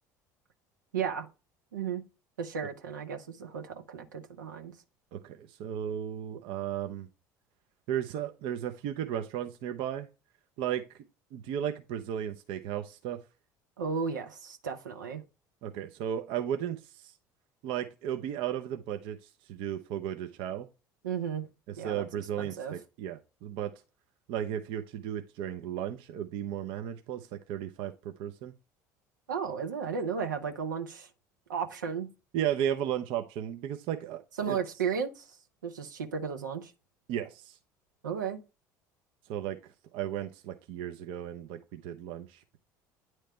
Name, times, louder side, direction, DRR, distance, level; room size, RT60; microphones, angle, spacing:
voice 1, 0.9-1.3 1.7-2.0 2.4-4.7 13.8-15.2 21.0-21.5 21.8-22.1 22.4-22.7 29.3-31.1 31.5-32.1 34.4-35.2 35.6-36.7 38.0-38.4, right 6 dB, 85° right, 0.9 m, -34 dB
voice 2, 5.1-7.1 7.9-10.1 10.6-10.9 11.3-13.2 15.6-17.1 17.6-20.7 21.7-23.7 24.3-28.5 32.3-34.6 37.1-37.6 39.3-39.6 39.9-42.6, right 10 dB, 65° right, 0.7 m, -35 dB
9.3 x 3.2 x 4.4 m
hypercardioid pair, 70°, 10 cm